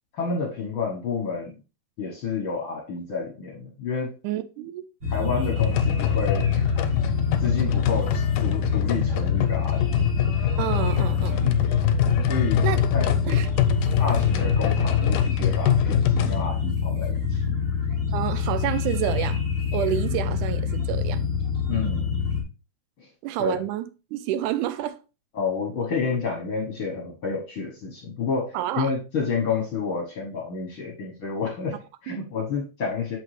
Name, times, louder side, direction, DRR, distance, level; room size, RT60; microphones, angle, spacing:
voice 1, 0.1-1.5 2.0-4.2 5.1-6.5 7.4-10.1 12.2-12.7 12.9-13.1 14.0-17.6 21.7-22.1 23.0-23.1 23.4-23.6 25.3-33.2, left 5 dB, 60° left, 1.4 m, -30 dB
voice 2, 4.2-4.8 10.6-11.6 12.6-12.8 13.3-13.5 18.1-19.4 19.7-21.2 23.2-25.0 28.5-28.9 32.1-32.2, right 12 dB, 85° right, 2.0 m, -29 dB
sound 1, 5.0-22.4, left 6 dB, 40° right, 2.4 m, -26 dB
sound 2, 5.6-16.4, left 9 dB, 85° left, 2.2 m, -24 dB
6.7 x 4.9 x 3.2 m
omnidirectional pair, 3.6 m